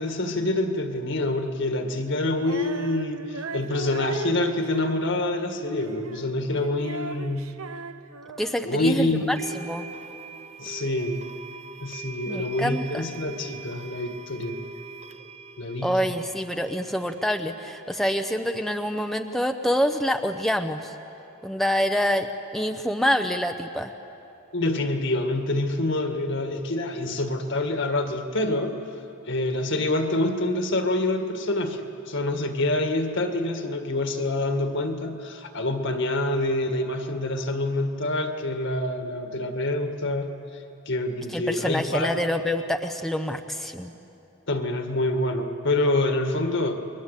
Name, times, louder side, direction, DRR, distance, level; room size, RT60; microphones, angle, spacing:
voice 1, 0.0-7.5 8.6-9.4 10.6-11.2 11.8-14.6 15.6-15.9 24.5-28.8 29.3-40.3 40.9-42.1 44.5-46.8, left 2 dB, 60° left, 6 dB, 1.9 m, -26 dB
Female singing, 2.4-8.8, right 4 dB, 85° right, 0.9 m, -37 dB
voice 2, 8.4-9.8 12.3-13.0 15.8-21.0 21.4-22.3 22.5-23.9 41.3-43.9, equal, ahead, 5 dB, 0.8 m, -26 dB
sound 1, 8.4-8.5 9.3-20.3, right 5 dB, 30° right, 0.8 m, -44 dB
29.5 x 22.0 x 8.3 m, 2.9 s
head